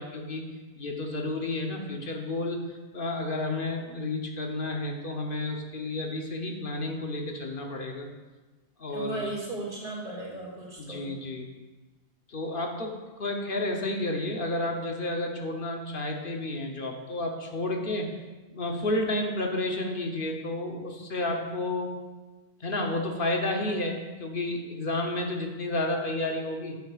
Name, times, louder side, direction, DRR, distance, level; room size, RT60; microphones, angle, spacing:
voice 1, 0.0-8.1 8.8-9.3 10.8-11.5 12.3-18.2 18.5-21.9 22.6-26.8, left 2 dB, 55° left, 2 dB, 1.1 m, -31 dB
voice 2, 8.9-11.2, right 2 dB, 55° right, -4 dB, 2.4 m, -36 dB
11.5 x 8.1 x 2.4 m, 1.2 s
omnidirectional pair, 1.1 m